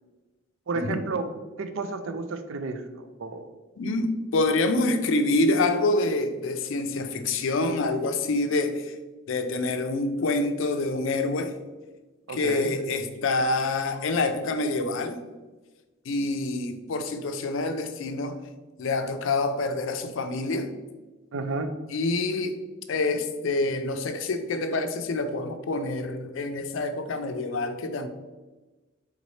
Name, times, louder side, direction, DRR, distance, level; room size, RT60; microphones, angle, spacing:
voice 1, 0.7-1.3 1.6-2.8 3.2-3.5 12.3-12.7 21.3-21.8, right 3 dB, 70° right, 9 dB, 0.4 m, -31 dB
voice 2, 3.8-8.9 9.3-11.6 12.3-15.2 16.1-18.4 18.8-20.7 21.9-22.6 22.9-28.1, left 2 dB, 70° left, 8 dB, 0.4 m, -26 dB
4.0 x 3.9 x 3.1 m, 1.2 s
head